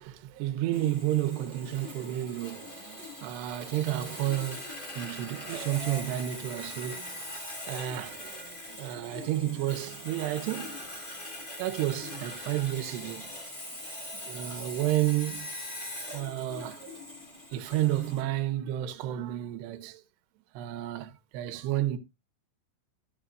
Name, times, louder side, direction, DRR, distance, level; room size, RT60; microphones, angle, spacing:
voice 1, 0.0-7.3 7.7-10.8 11.5-13.2 13.9-15.5 16.1-17.0 17.5-20.0 20.5-22.0, right 13 dB, 75° right, 2.6 m, -31 dB
Sawing, 0.7-18.2, left 1 dB, 85° left, 0.4 m, -42 dB
14.5 x 8.7 x 2.6 m
omnidirectional pair, 5.9 m